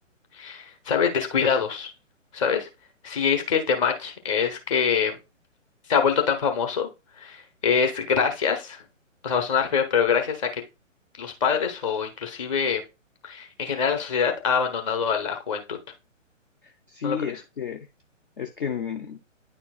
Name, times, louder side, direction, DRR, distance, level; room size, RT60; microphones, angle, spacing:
voice 1, 0.3-1.9 2.3-2.7 3.0-5.1 5.9-6.9 7.2-8.8 9.2-10.5 11.2-12.8 13.2-15.8 17.0-17.2, left 6 dB, 25° left, 1.1 m, -24 dB
voice 2, 16.6-17.9 18.4-19.2, left 7 dB, 45° left, 0.6 m, -32 dB
9.8 x 4.4 x 2.4 m
figure-of-eight pair, 135°, 39 cm